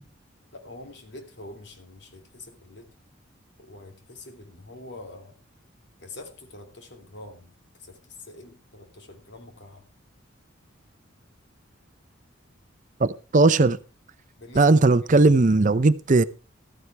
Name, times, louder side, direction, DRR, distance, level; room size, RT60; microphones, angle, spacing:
voice 1, 0.5-2.9 3.6-5.3 6.0-7.5 7.8-9.9 14.4-15.3, left 2 dB, 60° left, 2.7 m, -45 dB
voice 2, 13.0-13.8 14.6-16.2, right 3 dB, 40° right, 0.6 m, -18 dB
14.0 x 13.5 x 3.4 m
head